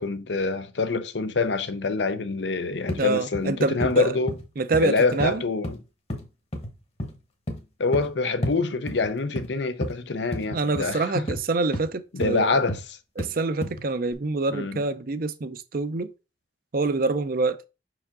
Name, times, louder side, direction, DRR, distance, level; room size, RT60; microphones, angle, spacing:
voice 1, 0.0-4.3 4.8-5.7 7.8-11.2 12.1-13.0 14.5-14.8, left 3 dB, 75° left, 0.7 m, -26 dB
sound 1, 2.9-3.0 3.3-3.5 3.8-4.0 4.3-4.5 4.7-4.9 5.2-5.8 6.1-6.3 6.5-6.7 7.0-7.2 7.5-7.6 7.9-8.1 8.4-8.6 8.9-9.5 9.8-9.9 10.3-10.5 10.8-10.9 11.3-11.4 11.7-11.9 12.2-12.3 12.7-12.9 13.2-13.3 13.6-13.8 14.1-14.2, equal, 35° left, 1.1 m, -31 dB
voice 2, 3.0-4.1 4.6-5.4 10.5-12.6 13.2-16.1 16.7-17.6, right 3 dB, 50° right, 0.5 m, -26 dB
5.7 x 4.8 x 3.7 m
head